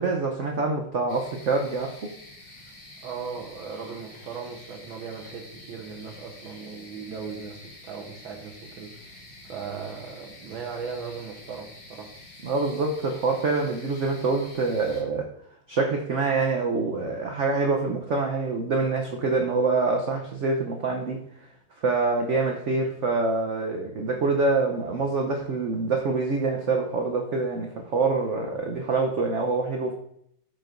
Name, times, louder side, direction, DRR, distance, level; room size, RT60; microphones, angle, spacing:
voice 1, 0.0-1.9 12.4-15.3 15.7-21.2 21.8-29.9, right 3 dB, 60° right, 2 dB, 0.8 m, -25 dB
sound 1, 1.1-15.0, left 1 dB, 70° left, 2.4 m, -47 dB
voice 2, 3.0-9.1 9.4-12.1 22.2-22.4, right 5 dB, 85° right, 2 dB, 1.8 m, -38 dB
14.0 x 6.1 x 2.5 m, 0.73 s
omnidirectional pair, 2.1 m